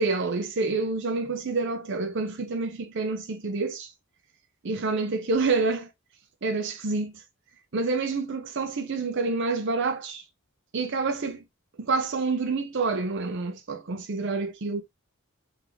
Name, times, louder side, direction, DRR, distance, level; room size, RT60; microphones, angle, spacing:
voice 1, 0.0-3.9 4.6-5.9 6.4-7.1 7.7-10.2 10.7-11.4 11.8-14.8, right 3 dB, 55° right, 0.6 m, -28 dB
3.7 x 3.5 x 3.0 m
head